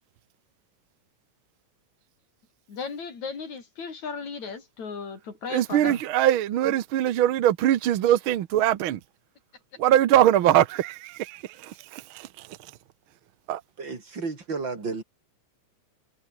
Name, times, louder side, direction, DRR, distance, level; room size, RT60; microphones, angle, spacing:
voice 1, 2.7-6.0 6.6-6.7, left 5 dB, 65° left, 5.8 m, -36 dB
voice 2, 5.5-9.0 9.8-12.7 13.5-13.6, right 12 dB, 65° right, 1.3 m, -22 dB
voice 3, 13.8-15.0, right 4 dB, 35° right, 4.6 m, -32 dB
omnidirectional pair, 3.5 m